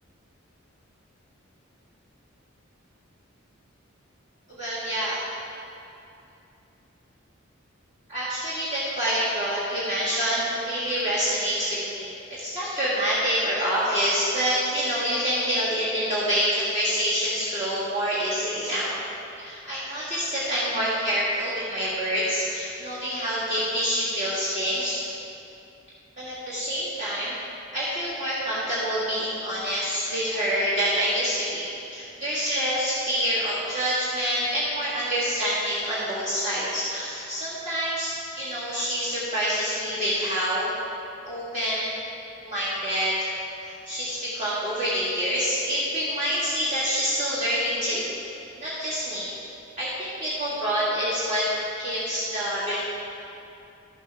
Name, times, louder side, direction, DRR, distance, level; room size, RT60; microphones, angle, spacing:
voice 1, 4.5-5.2 8.1-19.0 19.4-25.0 26.2-27.4 27.7-40.7 41.2-41.9 42.4-43.1 43.6-48.1 48.6-49.3 49.8-51.5 51.8-52.8, equal, 35° right, -11 dB, 1.9 m, -27 dB
12.0 x 7.7 x 3.4 m, 2.7 s
head